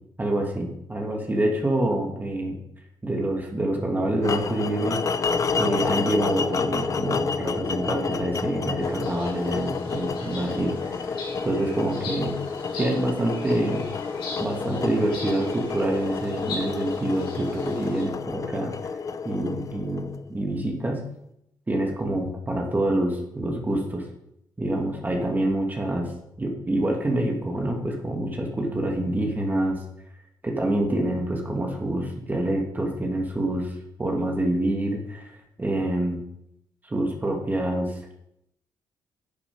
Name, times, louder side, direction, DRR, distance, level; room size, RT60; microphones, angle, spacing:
voice 1, 0.2-2.6 3.0-5.0 5.6-10.8 11.4-12.4 12.7-13.9 14.4-18.7 19.3-21.0 21.7-24.0 24.6-26.1 26.4-29.8 30.4-33.7 34.0-35.3 35.6-36.2 36.8-38.0, right 1 dB, 20° right, 1 dB, 1.9 m, -26 dB
sound 1, 4.2-20.3, left 5 dB, 40° left, 0.6 m, -30 dB
sound 2, 8.8-18.0, left 3 dB, 90° left, 4.8 m, -40 dB
10.0 x 7.3 x 5.2 m, 0.77 s
cardioid pair, 105°, 8 cm